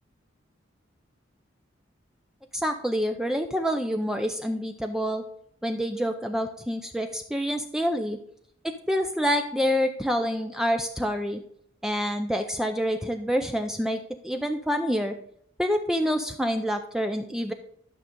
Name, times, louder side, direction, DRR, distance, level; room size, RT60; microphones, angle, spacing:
voice 1, 2.5-5.2 5.6-8.2 8.6-11.4 11.8-15.1 15.6-17.5, equal, 5° right, 5 dB, 0.4 m, -27 dB
12.0 x 6.3 x 3.7 m, 0.67 s
head